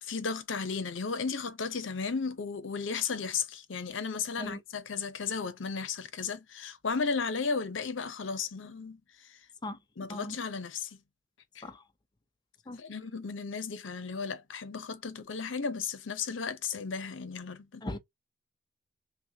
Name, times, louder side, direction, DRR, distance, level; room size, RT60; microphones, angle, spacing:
voice 1, 0.0-9.4 10.0-11.0 11.5-11.6 12.8-17.8, left 5 dB, 80° left, 0.7 m, -34 dB
voice 2, 4.4-4.6 9.6-9.8 10.1-10.4 11.6-11.8 12.7-12.8 17.8-18.0, left 1 dB, 20° left, 0.5 m, -38 dB
5.8 x 2.2 x 2.7 m
head